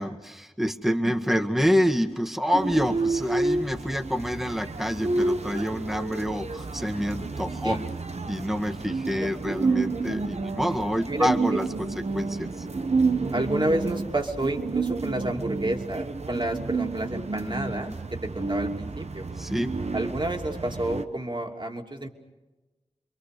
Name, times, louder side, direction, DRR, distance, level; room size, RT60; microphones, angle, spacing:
voice 1, 0.0-7.8 8.3-11.9 12.1-12.7 19.4-19.7, equal, ahead, 4 dB, 1.8 m, -27 dB
voice 2, 0.9-1.4 4.6-4.7 7.6-7.8 9.2-9.3 11.1-11.6 13.3-19.3 19.9-22.1, right 1 dB, 40° right, 3 dB, 2.9 m, -30 dB
sound 1, 2.5-21.0, right 3 dB, 65° right, 1.2 m, -30 dB
27.5 x 23.0 x 6.7 m, 1.2 s
cardioid pair, 40°, 12 cm